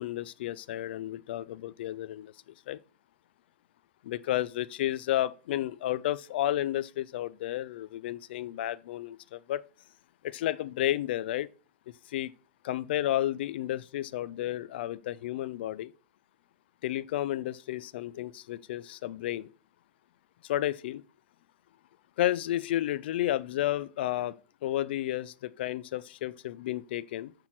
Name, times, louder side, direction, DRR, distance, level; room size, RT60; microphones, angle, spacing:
voice 1, 0.0-2.3 2.7-2.8 4.0-9.6 10.2-11.5 12.1-12.3 12.6-15.9 16.8-19.5 20.4-21.0 22.2-24.4 24.6-27.3, left 13 dB, 65° left, 0.5 m, -32 dB
6.7 x 5.8 x 5.8 m
hypercardioid pair, 135°, 6 cm